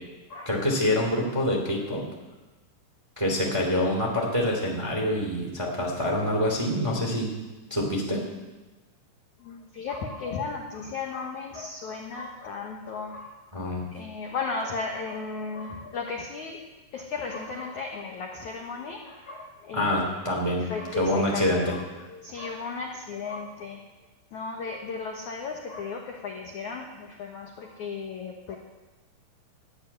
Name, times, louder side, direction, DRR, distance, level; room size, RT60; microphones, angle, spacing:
voice 1, 0.4-2.0 3.2-7.3 7.7-8.2 13.5-13.8 19.7-20.6 20.9-21.7, left 1 dB, 10° right, -1 dB, 1.7 m, -26 dB
voice 2, 9.4-13.3 13.9-16.6 16.9-20.1 20.7-21.8 22.1-23.8 24.3-28.6, left 4 dB, 65° left, 1 dB, 1.9 m, -35 dB
13.0 x 9.5 x 9.5 m, 1.2 s
omnidirectional pair, 5.2 m